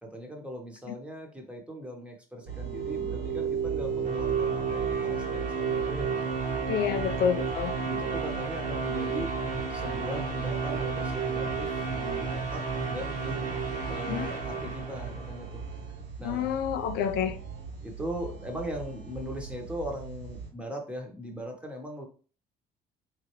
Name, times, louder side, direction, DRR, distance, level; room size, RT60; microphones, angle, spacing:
voice 1, 0.0-6.1 6.8-7.1 7.9-9.3 9.7-13.5 13.9-15.6 16.2-16.6 17.8-22.0, equal, 5° right, 1.0 m, -39 dB
sound 1, 2.5-15.6, right 5 dB, 50° right, 1.1 m, -32 dB
sound 2, 2.5-20.5, right 5 dB, 80° right, 1.8 m, -40 dB
voice 2, 6.7-7.8 14.0-14.3 16.2-17.4, left 8 dB, 75° left, 0.4 m, -28 dB
3.7 x 3.2 x 3.0 m
cardioid pair, 110°, 17 cm